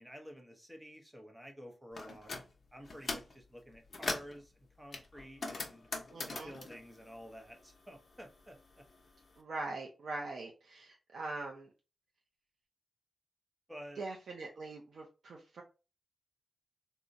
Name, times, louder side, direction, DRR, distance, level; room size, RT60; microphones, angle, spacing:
voice 1, 0.0-2.3 2.7-5.9 6.3-8.8 13.7-14.0, equal, 10° right, 3 dB, 0.6 m, -51 dB
sound 1, 2.0-2.4 2.8-3.4 3.7-4.4 4.9-7.8 8.1-9.2, left 3 dB, 45° left, 0.6 m, -41 dB
voice 2, 6.1-6.5 9.4-11.7 14.0-15.6, right 3 dB, 85° right, 0 dB, 0.5 m, -42 dB
3.6 x 2.0 x 2.6 m, 0.31 s
wide cardioid pair, 155°, 0 cm